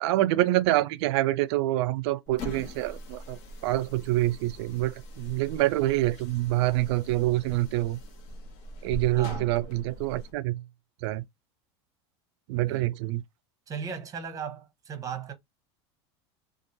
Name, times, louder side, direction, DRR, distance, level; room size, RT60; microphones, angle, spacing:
voice 1, 0.0-8.0 8.8-10.6 11.0-11.2 12.5-13.2, right 16 dB, 70° right, 0.4 m, -26 dB
sound 1, 2.3-10.3, left 1 dB, 55° left, 1.0 m, -42 dB
voice 2, 9.1-9.5 12.6-12.9 13.7-15.3, right 6 dB, 25° right, 0.8 m, -37 dB
2.9 x 2.5 x 2.6 m
supercardioid pair, 115°, 14 cm